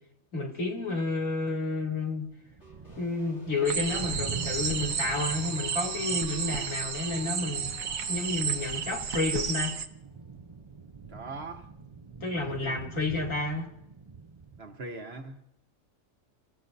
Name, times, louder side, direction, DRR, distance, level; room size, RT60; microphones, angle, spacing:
voice 1, 0.3-2.3 3.0-7.7 8.1-9.8 12.2-13.7, left 3 dB, 70° left, 3.2 m, -30 dB
sound 1, 1.9-14.6, right 5 dB, 30° right, 0.6 m, -45 dB
sound 2, 2.6-10.3, left 2 dB, 55° left, 4.0 m, -54 dB
sound 3, 3.7-9.9, right 7 dB, 85° right, 1.5 m, -32 dB
voice 2, 11.1-11.7 12.5-12.9 14.6-15.4, right 3 dB, 50° right, 1.5 m, -41 dB
28.0 x 14.5 x 2.7 m
omnidirectional pair, 1.4 m